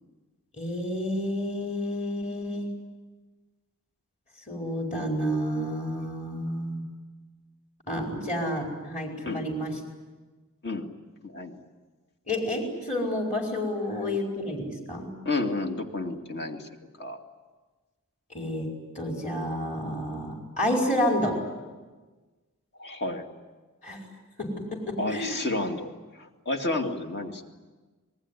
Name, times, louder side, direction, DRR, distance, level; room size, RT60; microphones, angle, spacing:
voice 1, 0.5-2.7 4.5-6.8 7.9-9.8 12.3-15.1 18.3-18.7 18.9-21.4 23.8-24.0 24.4-25.4, left 1 dB, 35° left, 1 dB, 4.8 m, -30 dB
voice 2, 11.2-11.6 15.2-16.7 17.0-17.2 22.8-23.3 25.0-27.4, left 2 dB, 50° left, 4 dB, 2.4 m, -31 dB
27.0 x 20.0 x 9.9 m, 1.3 s
head